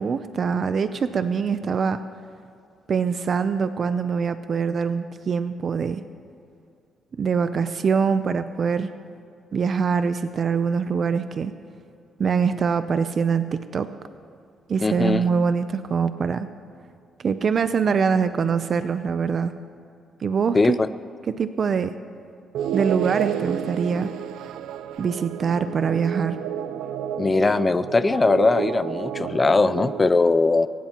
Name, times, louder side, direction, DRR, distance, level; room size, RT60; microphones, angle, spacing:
voice 1, 0.0-2.0 2.9-6.0 7.2-8.9 9.5-11.5 12.2-13.9 14.7-16.5 17.2-19.6 20.2-20.8 21.3-22.0 22.7-24.1 25.0-26.4, right 6 dB, 45° right, 11 dB, 0.5 m, -23 dB
voice 2, 14.8-15.2 20.5-20.9 27.2-30.7, left 3 dB, 20° left, 13 dB, 0.5 m, -20 dB
sound 1, 22.5-30.1, right 9 dB, 90° right, 0.6 m, -30 dB
23.0 x 18.5 x 3.0 m, 2.5 s
cardioid pair, 120°, 0 cm